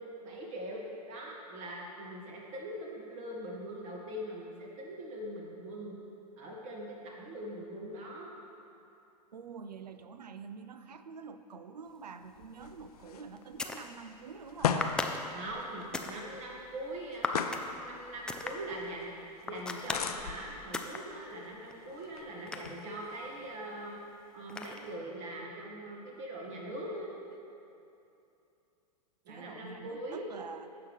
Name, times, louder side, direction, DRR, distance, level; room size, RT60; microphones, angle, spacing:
voice 1, 0.0-5.9 6.4-8.3 15.3-24.0 24.3-27.1 29.2-30.3, right 1 dB, 50° right, -2 dB, 2.1 m, -42 dB
voice 2, 9.3-15.0 29.3-30.7, right 5 dB, 75° right, 10 dB, 0.5 m, -46 dB
sound 1, 12.2-23.6, left 7 dB, 65° left, 0.6 m, -40 dB
sound 2, 12.7-12.8 13.4-13.9 14.8-16.2 17.2-17.7 18.3-18.5 19.4-20.1 20.7-21.0 21.4-23.2 24.5-25.0, left 3 dB, 5° left, 0.3 m, -36 dB
15.5 x 5.8 x 3.4 m, 2.8 s
figure-of-eight pair, 105°, 21 cm